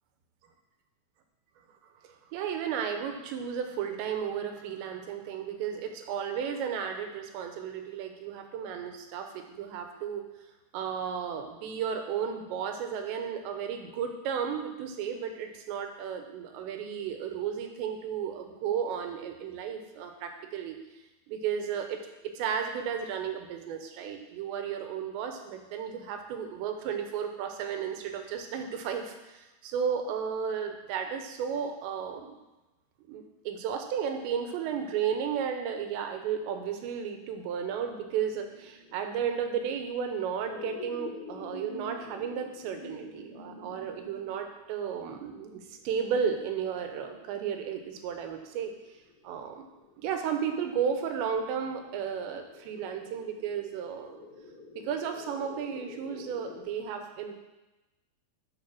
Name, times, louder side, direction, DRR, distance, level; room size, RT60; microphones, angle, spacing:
voice 1, 2.3-10.2 10.7-20.8 21.3-32.4 33.1-48.7 49.2-49.7 50.0-54.2 54.8-57.4, right 7 dB, 85° right, 5 dB, 3.1 m, -33 dB
sound 1, 36.8-56.6, left 3 dB, 70° left, 1.1 m, -49 dB
10.5 x 4.3 x 6.1 m, 1.1 s
omnidirectional pair, 5.1 m